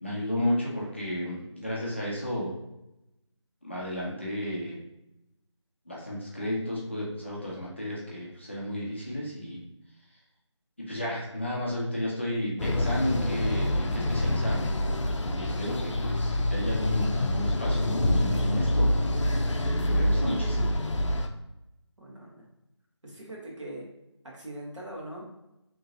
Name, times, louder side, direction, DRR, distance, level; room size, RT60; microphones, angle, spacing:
voice 1, 0.0-2.5 3.6-4.8 5.9-9.6 10.8-14.7 15.3-18.9 19.9-20.7, left 1 dB, 25° left, -5 dB, 0.5 m, -32 dB
sound 1, 12.6-21.3, left 1 dB, 80° left, 0.4 m, -26 dB
voice 2, 20.1-20.6 22.0-22.5 23.0-23.9 24.2-25.3, right 1 dB, 85° right, -3 dB, 1.2 m, -41 dB
2.9 x 2.6 x 2.6 m, 0.88 s
figure-of-eight pair, 170°, 15 cm